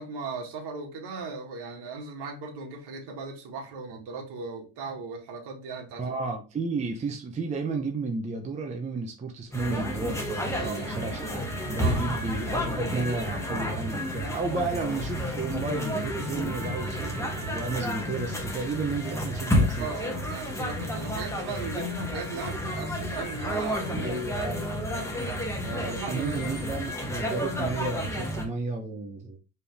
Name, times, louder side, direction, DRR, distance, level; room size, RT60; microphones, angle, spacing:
voice 1, 0.0-6.1 10.5-10.9 11.8-12.2 19.8-24.3 24.6-26.5, right 4 dB, 60° right, 2.0 m, -38 dB
voice 2, 5.9-19.9 23.9-24.7 25.6-29.4, right 3 dB, 15° right, 0.6 m, -32 dB
sound 1, 9.5-28.4, equal, 5° left, 1.2 m, -31 dB
4.4 x 3.5 x 3.4 m
cardioid pair, 115°, 45 cm